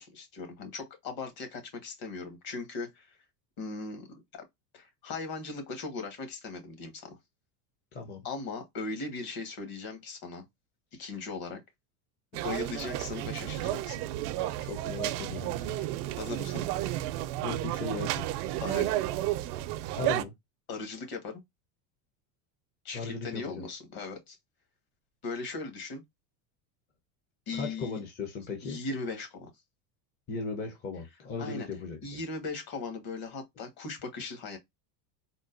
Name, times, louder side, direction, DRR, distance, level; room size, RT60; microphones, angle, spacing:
voice 1, 0.0-3.2 3.6-4.1 4.3-4.4 4.7-7.2 8.2-10.4 11.0-11.6 12.3-14.0 16.2-16.6 18.6-18.9 20.7-21.4 22.8-24.4 25.2-26.0 27.5-28.0 28.6-29.5 31.4-31.7 32.0-34.6, left 3 dB, 50° left, 1.4 m, -38 dB
voice 2, 7.9-8.3 10.9-11.1 14.6-15.8 17.4-18.3 20.0-20.3 22.9-23.6 27.5-28.8 30.3-32.2, left 3 dB, 25° left, 0.5 m, -37 dB
sound 1, 12.3-20.2, right 14 dB, 70° right, 0.6 m, -32 dB
3.7 x 2.2 x 2.5 m
supercardioid pair, 140°, 47 cm